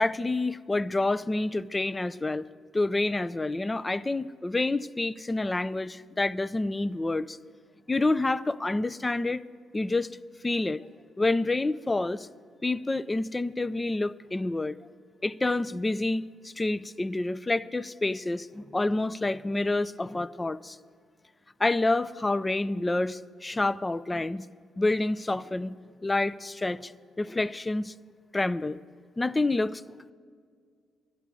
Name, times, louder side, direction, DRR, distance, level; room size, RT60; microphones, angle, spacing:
voice 1, 0.0-2.5 2.7-7.4 7.9-9.4 9.7-10.1 10.4-10.9 11.2-12.3 12.6-14.8 15.2-20.8 21.6-24.5 24.8-25.8 26.0-26.9 27.2-27.9 28.3-28.8 29.2-29.8, left 2 dB, 20° left, 16 dB, 0.4 m, -28 dB
12.0 x 10.5 x 8.1 m, 2.1 s
cardioid pair, 90°, 0 cm